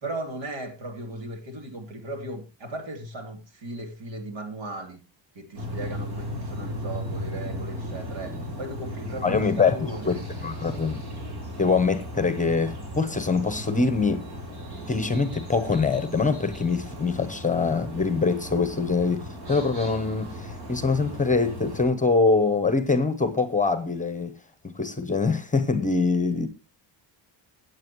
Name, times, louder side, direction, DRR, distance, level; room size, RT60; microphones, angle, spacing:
voice 1, 0.0-5.0 5.3-10.3, right 1 dB, 75° right, 3.4 m, -37 dB
sound 1, 5.6-21.9, equal, 55° right, 4.0 m, -36 dB
voice 2, 9.2-9.7 10.1-10.2 10.4-11.0 11.6-14.2 14.9-24.3 24.6-26.5, left 4 dB, 15° left, 0.9 m, -24 dB
18.5 x 8.1 x 3.1 m
cardioid pair, 155°, 46 cm